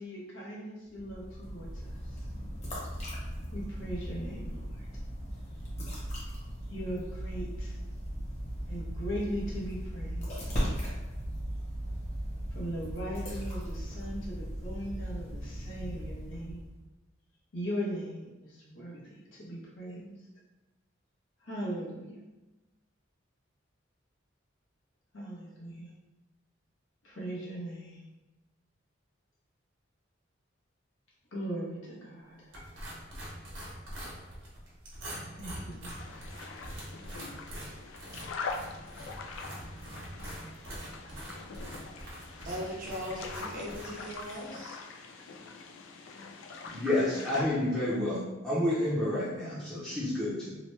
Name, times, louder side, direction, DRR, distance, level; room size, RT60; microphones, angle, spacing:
voice 1, 0.0-2.3 3.5-4.9 6.7-7.8 8.7-10.5 12.5-16.7 17.5-20.1 21.4-22.3 25.1-25.9 27.0-28.0 31.3-32.5 35.3-36.2, equal, 90° left, -4 dB, 0.9 m, -39 dB
sound 1, 0.9-16.8, equal, 35° left, 0.9 m, -37 dB
sound 2, 32.5-44.4, right 1 dB, 85° right, 0.9 m, -44 dB
sound 3, 36.0-47.4, left 4 dB, 75° left, 0.3 m, -43 dB
voice 2, 42.4-44.8, equal, 45° right, -4 dB, 0.7 m, -39 dB
voice 3, 46.7-50.6, left 1 dB, 5° left, -11 dB, 0.6 m, -30 dB
2.9 x 2.1 x 3.1 m, 1.1 s
head